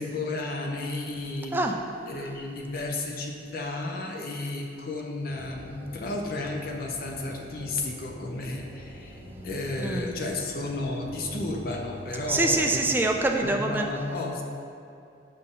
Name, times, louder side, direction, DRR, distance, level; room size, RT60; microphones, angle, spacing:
voice 1, 0.0-1.5 2.0-12.9 13.4-14.4, left 2 dB, 50° left, 0 dB, 0.7 m, -33 dB
sound 1, 5.3-13.4, equal, 50° right, 0.9 m, -44 dB
voice 2, 9.8-10.1 12.3-13.9, right 2 dB, 10° right, 2 dB, 0.3 m, -25 dB
6.5 x 4.2 x 3.7 m, 2.6 s
head